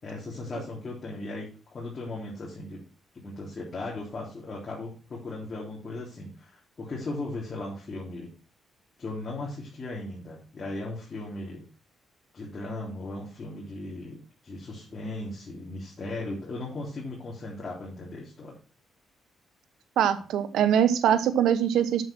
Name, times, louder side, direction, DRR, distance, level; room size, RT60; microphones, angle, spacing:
voice 1, 0.0-2.8 3.1-8.3 9.0-11.6 12.3-18.6, left 2 dB, 35° left, -4 dB, 3.5 m, -37 dB
voice 2, 20.0-22.0, right 9 dB, 85° right, 11 dB, 1.0 m, -23 dB
8.2 x 7.5 x 4.4 m, 0.37 s
cardioid pair, 105°, 0 cm